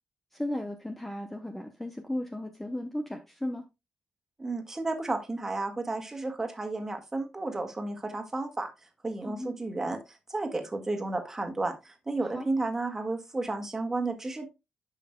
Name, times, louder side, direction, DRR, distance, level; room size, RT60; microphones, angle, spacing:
voice 1, 0.3-3.6 9.2-9.5 12.2-12.5, left 1 dB, 10° left, 5 dB, 0.8 m, -35 dB
voice 2, 4.4-8.7 9.0-10.0 10.3-14.5, right 2 dB, 20° right, 4 dB, 1.7 m, -32 dB
11.0 x 5.6 x 2.2 m, 0.24 s
cardioid pair, 125°, 2 cm